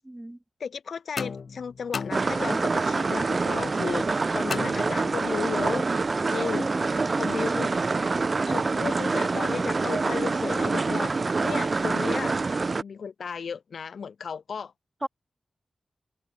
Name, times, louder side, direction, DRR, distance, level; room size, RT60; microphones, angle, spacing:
voice 1, 0.1-0.4 6.5-7.6 15.0-15.1, right 1 dB, 10° right, 0.9 m, -36 dB
voice 2, 0.6-5.9 6.3-6.7 7.2-7.7 8.5-11.2 11.4-12.4 12.8-14.7, left 6 dB, 70° left, 0.5 m, -34 dB
sound 1, 1.2-2.8 4.5-5.5, left 5 dB, 55° left, 1.4 m, -36 dB
sound 2, 2.1-12.8, right 3 dB, 35° right, 0.3 m, -26 dB
wide cardioid pair, 175°, 0 cm